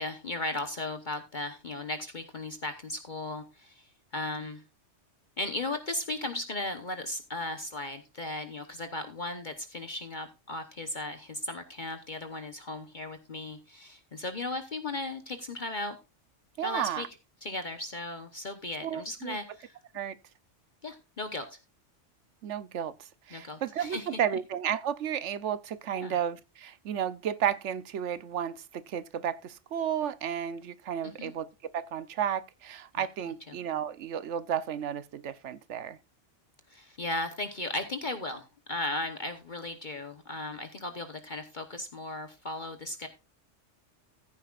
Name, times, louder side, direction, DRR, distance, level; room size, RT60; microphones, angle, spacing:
voice 1, 0.0-4.6 5.4-16.0 16.6-17.1 17.4-19.8 20.8-21.4 23.3-24.2 25.9-26.1 31.2-31.3 33.0-33.1 33.5-33.6 36.7-43.1, left 2 dB, 40° left, 1.1 m, -36 dB
voice 2, 16.6-17.1 18.8-19.4 19.9-20.2 22.4-31.5 31.7-36.0, right 9 dB, 70° right, 1.1 m, -33 dB
15.0 x 9.9 x 2.5 m
omnidirectional pair, 1.3 m